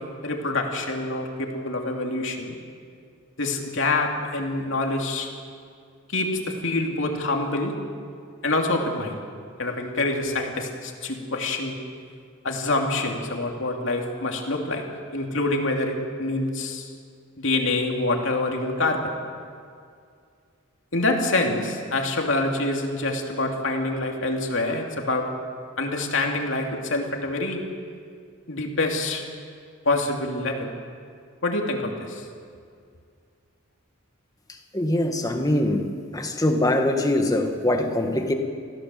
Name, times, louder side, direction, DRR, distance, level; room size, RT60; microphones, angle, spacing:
voice 1, 0.2-2.6 3.4-5.3 6.1-7.7 8.4-9.2 9.6-11.8 12.4-14.8 15.1-16.9 17.4-19.1 20.9-25.3 25.8-27.6 28.5-29.2 29.8-30.7 31.4-32.2, left 2 dB, 60° left, 2 dB, 2.7 m, -26 dB
voice 2, 34.7-35.9 36.1-38.3, left 1 dB, 15° left, 4 dB, 1.7 m, -23 dB
24.5 x 16.0 x 7.7 m, 2.2 s
head